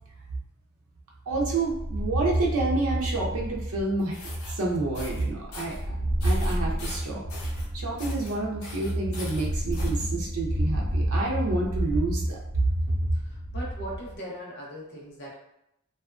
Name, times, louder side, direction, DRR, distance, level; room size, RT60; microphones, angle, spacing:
sound 1, 1.3-14.1, right 1 dB, 40° right, 0.7 m, -29 dB
voice 1, 1.3-4.2 4.5-5.8 6.2-7.2 7.7-12.4, right 2 dB, 85° right, -2 dB, 0.6 m, -29 dB
sound 2, 4.0-4.5 4.9-5.2 5.5-5.8 6.2-7.7 8.0-8.3 8.6-10.0, left 3 dB, 85° left, 0.7 m, -42 dB
voice 2, 13.1-15.4, equal, 50° left, -5 dB, 0.9 m, -39 dB
2.6 x 2.3 x 2.4 m, 0.82 s
head